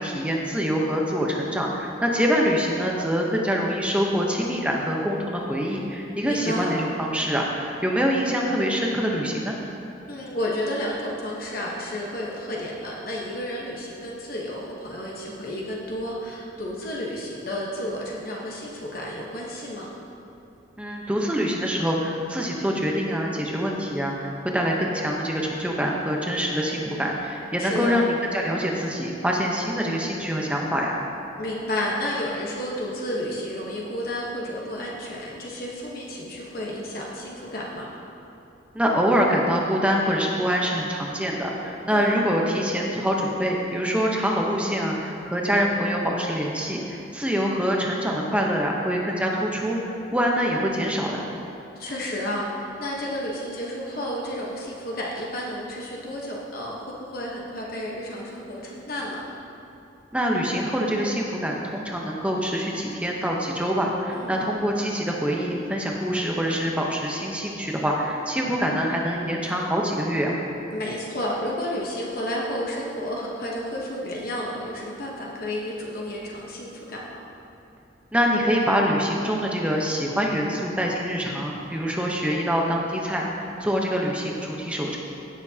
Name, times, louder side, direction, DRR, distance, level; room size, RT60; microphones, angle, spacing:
voice 1, 0.0-9.6 20.8-31.0 38.7-51.3 60.1-70.4 78.1-83.3 83.6-85.0, equal, 5° right, -1 dB, 0.8 m, -25 dB
voice 2, 6.2-6.7 10.1-19.9 27.6-28.0 31.4-37.9 41.9-42.2 51.7-59.2 64.1-64.4 70.7-77.2, left 1 dB, 50° left, -3 dB, 1.1 m, -31 dB
16.5 x 7.0 x 2.8 m, 2.7 s
head